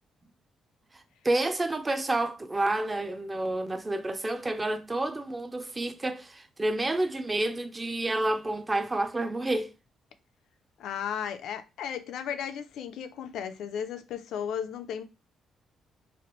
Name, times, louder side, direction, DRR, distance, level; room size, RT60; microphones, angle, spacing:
voice 1, 0.9-9.7, right 2 dB, 20° right, 0.4 m, -29 dB
voice 2, 10.8-15.0, left 8 dB, 80° left, 0.4 m, -35 dB
3.0 x 2.5 x 2.9 m
cardioid pair, 90°, 0 cm